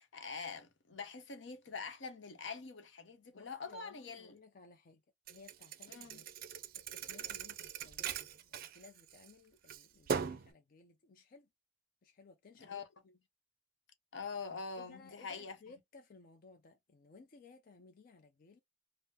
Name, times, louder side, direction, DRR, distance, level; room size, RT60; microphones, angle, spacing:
voice 1, 0.0-4.4 5.9-6.2 12.6-12.9 14.1-15.7, left 5 dB, 75° left, 0.8 m, -45 dB
voice 2, 3.3-5.0 5.3-6.3 6.7-11.5 12.0-13.2 14.8-18.6, left 4 dB, 50° left, 0.5 m, -59 dB
Thump thud, 5.3-9.3 9.7-10.5, right 7 dB, 50° right, 0.4 m, -40 dB
3.6 x 2.0 x 2.7 m
head